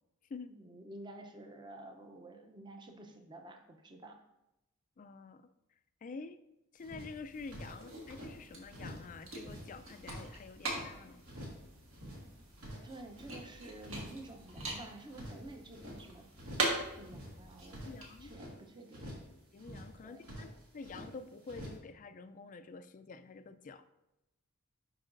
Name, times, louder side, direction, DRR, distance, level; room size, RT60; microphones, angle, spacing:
voice 1, 0.5-4.2 12.2-12.3 12.8-16.3 16.9-17.8 18.2-19.1 20.0-20.2, right 2 dB, 20° right, 4 dB, 0.6 m, -50 dB
voice 2, 5.0-5.4 6.0-6.4 6.7-11.2 17.8-18.3 19.5-20.5 20.7-23.8, left 4 dB, 35° left, 11 dB, 0.3 m, -48 dB
sound 1, 6.8-8.3 8.7-9.1 9.3-10.9 11.2-11.6 11.9-13.4 13.8-14.2 14.5-16.0 16.3-16.8 17.0-18.5 18.9-19.3 19.6-21.1 21.4-21.8, equal, 90° right, 2.3 m, -48 dB
sound 2, 7.3-18.3, right 2 dB, 70° right, 1.6 m, -43 dB
10.5 x 4.7 x 2.5 m, 0.92 s
head